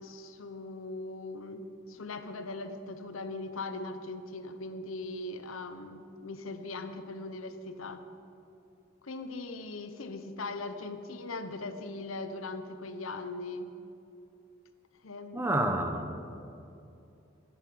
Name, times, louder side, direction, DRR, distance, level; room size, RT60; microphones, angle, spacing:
voice 1, 0.0-8.0 9.0-13.7 15.0-15.5, left 2 dB, 80° left, 9 dB, 0.9 m, -40 dB
voice 2, 15.3-16.4, right 1 dB, 10° right, 6 dB, 0.9 m, -30 dB
12.0 x 10.5 x 7.8 m, 2.7 s
head